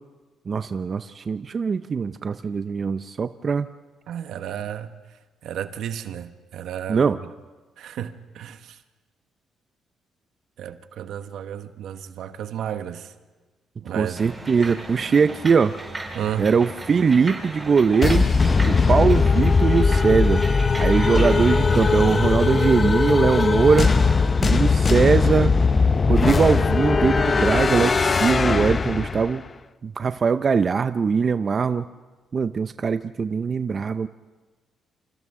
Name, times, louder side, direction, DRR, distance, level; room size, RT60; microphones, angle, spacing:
voice 1, 0.5-3.7 6.9-7.2 13.9-15.7 16.4-18.3 18.7-20.4 20.8-23.9 24.4-25.5 26.1-29.4 29.8-31.9 32.3-34.1, right 5 dB, 40° right, 0.6 m, -21 dB
voice 2, 4.1-4.9 5.4-7.1 7.8-8.8 10.6-13.1 13.8-14.4 16.1-16.5, right 10 dB, 75° right, 1.2 m, -33 dB
sound 1, 14.2-24.3, right 2 dB, 15° right, 4.8 m, -36 dB
sound 2, 18.0-29.4, left 4 dB, 35° left, 0.7 m, -19 dB
28.5 x 27.5 x 3.7 m
cardioid pair, 90°, 0 cm